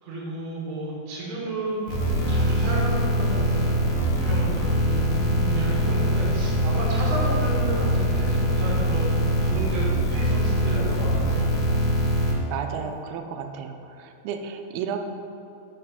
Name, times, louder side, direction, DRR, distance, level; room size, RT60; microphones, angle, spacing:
voice 1, 0.0-5.0 5.4-11.6, right 1 dB, 60° right, -5 dB, 2.7 m, -32 dB
sound 1, 1.9-12.3, equal, 70° left, 2.0 m, -23 dB
voice 2, 4.9-5.8 12.5-15.0, right 6 dB, 80° right, 5 dB, 2.4 m, -33 dB
6.0 x 4.4 x 5.6 m, 2.7 s
omnidirectional pair, 4.7 m